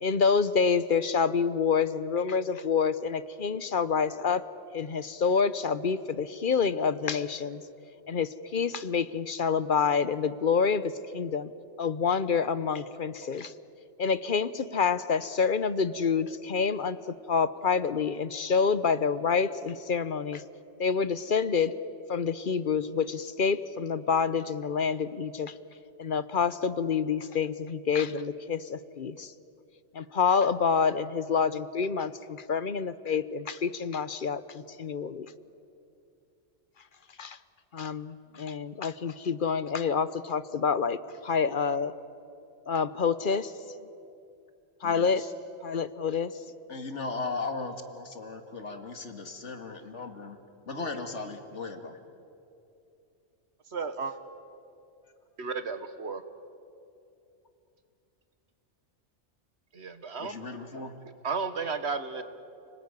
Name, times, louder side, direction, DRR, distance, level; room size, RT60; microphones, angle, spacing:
voice 1, 0.0-4.4 4.7-7.6 8.1-11.5 11.8-13.5 14.0-17.0 17.3-20.4 20.8-21.7 22.1-25.5 26.0-29.3 29.9-35.3 37.2-37.4 37.7-41.0 41.2-41.9 42.7-43.5 44.8-45.2 45.6-46.3, left 6 dB, 50° left, 14 dB, 0.9 m, -27 dB
voice 2, 44.8-45.3 46.7-50.4 50.7-52.0 60.2-60.9, left 3 dB, 80° left, 6 dB, 2.3 m, -37 dB
voice 3, 53.7-54.1 55.4-56.2 59.7-60.3 61.2-62.2, right 5 dB, 65° right, 10 dB, 1.6 m, -33 dB
30.0 x 20.0 x 9.7 m, 2.7 s
omnidirectional pair, 1.2 m